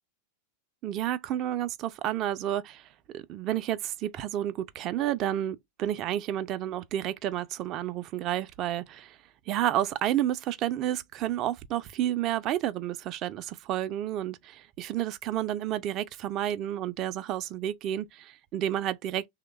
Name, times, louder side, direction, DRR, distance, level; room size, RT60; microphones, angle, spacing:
voice 1, 0.8-2.9 3.1-9.2 9.5-19.3, right 12 dB, 35° right, 0.4 m, -30 dB
3.1 x 2.1 x 3.0 m
figure-of-eight pair, 90°, 0 cm